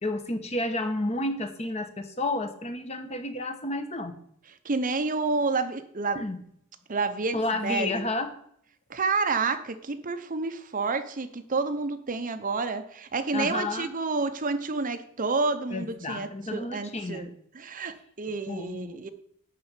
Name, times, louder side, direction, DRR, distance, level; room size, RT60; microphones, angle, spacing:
voice 1, 0.0-4.2 6.1-6.4 7.3-8.3 13.3-13.9 15.7-17.3 18.5-19.1, left 2 dB, 30° left, 8 dB, 1.1 m, -31 dB
voice 2, 4.6-6.2 6.9-8.0 8.9-17.3 17.5-19.1, right 3 dB, 40° right, 9 dB, 0.8 m, -29 dB
11.5 x 4.4 x 8.2 m, 0.67 s
head